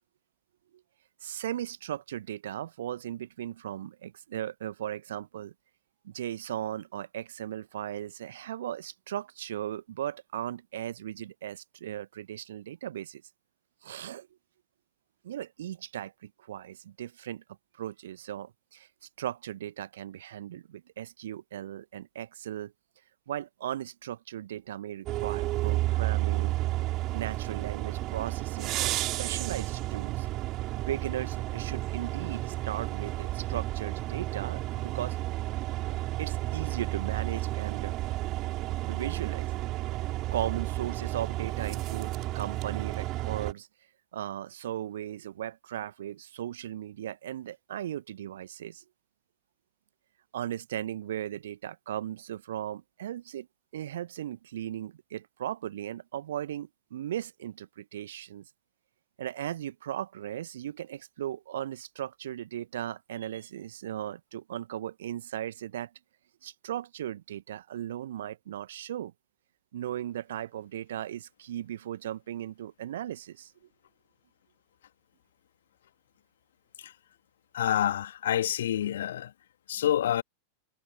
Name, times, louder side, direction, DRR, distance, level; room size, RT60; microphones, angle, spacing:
voice 1, 1.2-5.5 6.0-13.2 13.8-14.3 15.2-17.4 17.8-18.9 19.2-22.7 23.3-26.6 27.1-30.3 30.8-35.2 36.2-37.9 38.8-39.5 40.3-43.7 44.1-48.8 50.3-53.5 53.7-58.5 59.2-65.9 66.4-69.1 69.7-73.5, right 11 dB, 60° right, 1.2 m, -37 dB
sound 1, 25.1-43.5, right 17 dB, 35° right, 4.1 m, -32 dB
voice 2, 77.5-79.3 79.7-80.2, left 11 dB, 60° left, 1.9 m, -27 dB
figure-of-eight pair, 90°, 0 cm